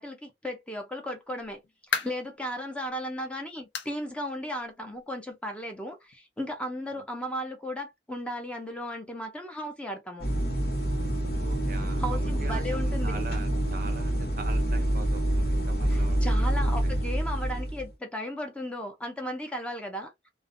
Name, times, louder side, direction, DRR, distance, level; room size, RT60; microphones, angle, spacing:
voice 1, 0.0-1.6 1.9-10.3 12.0-13.2 15.9-20.3, equal, 5° left, 0.5 m, -35 dB
sound 1, 1.3-2.4 2.9-3.0 3.7-4.0 4.3-4.4 4.9-5.0 6.1-6.2, left 6 dB, 85° left, 0.5 m, -34 dB
sound 2, 10.2-17.9, right 1 dB, 60° left, 1.0 m, -27 dB
voice 2, 11.4-16.9, right 3 dB, 50° right, 0.5 m, -42 dB
2.4 x 2.1 x 2.5 m
head